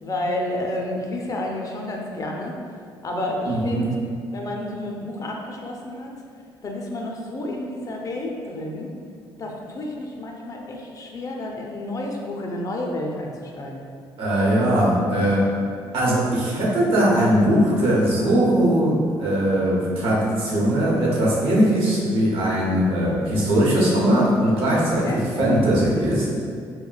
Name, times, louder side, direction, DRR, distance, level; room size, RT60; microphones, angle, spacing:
voice 1, 0.0-2.6 3.0-3.9 4.3-6.1 6.6-8.9 9.4-13.8 25.0-25.2, left 1 dB, 35° left, 0 dB, 0.4 m, -30 dB
voice 2, 3.5-3.9 14.2-15.4 15.9-26.3, right 1 dB, 70° right, -6 dB, 0.8 m, -20 dB
2.3 x 2.1 x 3.8 m, 2.2 s
cardioid pair, 95°, 9 cm